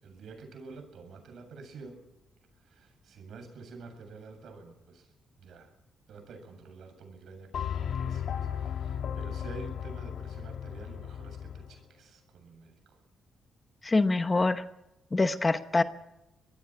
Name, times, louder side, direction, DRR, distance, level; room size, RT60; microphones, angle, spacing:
voice 1, 0.0-2.1 2.6-5.1 5.4-5.7 6.1-12.8, right 4 dB, 65° right, 6 dB, 7.6 m, -48 dB
sound 1, 7.5-11.7, left 8 dB, 60° left, 1.8 m, -35 dB
voice 2, 13.8-14.6 15.1-15.8, left 3 dB, 20° left, 10 dB, 0.9 m, -25 dB
25.0 x 19.0 x 6.0 m, 0.88 s
cardioid pair, 145°, 0 cm